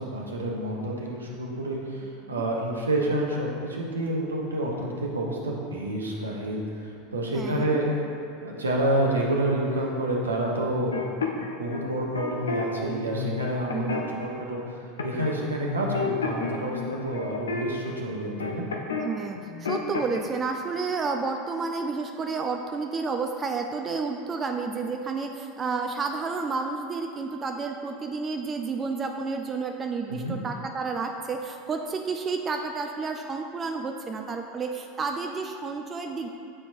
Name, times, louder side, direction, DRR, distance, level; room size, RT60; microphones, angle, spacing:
voice 1, 0.0-7.9 8.4-10.9 11.4-13.9 14.1-14.6 15.0-18.6 30.1-30.3, right 1 dB, 75° right, -1 dB, 0.8 m, -28 dB
voice 2, 7.3-7.8 13.7-14.1 19.0-36.3, right 4 dB, 25° right, 4 dB, 0.3 m, -31 dB
sound 1, 10.9-12.6 13.1-14.3 15.0-15.4 15.6-19.1 19.4-20.2, left 5 dB, 70° left, 0.5 m, -31 dB
8.6 x 4.3 x 2.6 m, 2.7 s
figure-of-eight pair, 80°, 0 cm